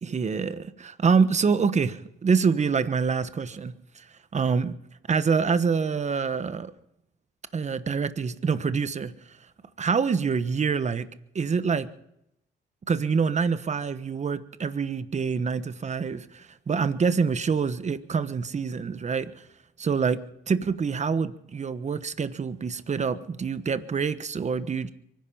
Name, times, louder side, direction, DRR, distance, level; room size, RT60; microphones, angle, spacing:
voice 1, 0.0-3.7 4.3-4.7 5.1-6.7 7.5-9.1 9.8-11.1 11.3-11.9 12.9-19.4 19.8-20.2 20.5-24.9, right 5 dB, 35° right, 1.2 m, -26 dB
24.0 x 10.5 x 5.7 m
cardioid pair, 90°, 20 cm